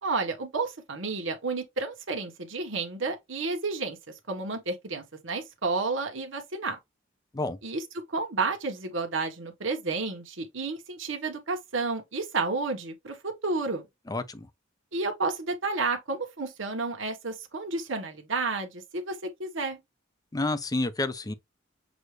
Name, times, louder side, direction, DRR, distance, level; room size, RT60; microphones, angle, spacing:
voice 1, 0.0-4.0 4.3-6.8 7.6-7.8 8.1-13.8 14.9-19.8, right 3 dB, 70° right, 1.2 m, -31 dB
voice 2, 14.1-14.5 20.3-21.3, left 2 dB, 20° left, 0.5 m, -29 dB
6.2 x 2.5 x 3.2 m
head